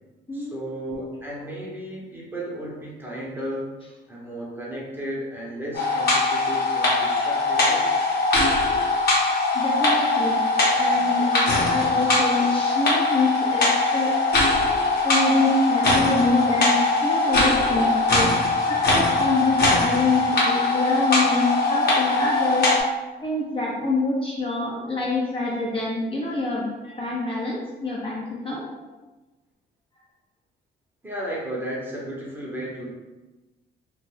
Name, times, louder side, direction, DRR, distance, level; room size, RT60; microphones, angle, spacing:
voice 1, 0.3-3.7 4.1-8.0 31.0-32.9, right 1 dB, 10° right, -5 dB, 0.8 m, -34 dB
sound 1, 5.7-22.8, left 2 dB, 50° left, 0.9 m, -21 dB
voice 2, 9.5-13.7 13.9-14.1 15.0-18.3 18.7-22.7 23.2-28.6, left 2 dB, 25° left, -5 dB, 0.6 m, -25 dB
2.2 x 2.1 x 3.2 m, 1.1 s
cardioid pair, 90°, 20 cm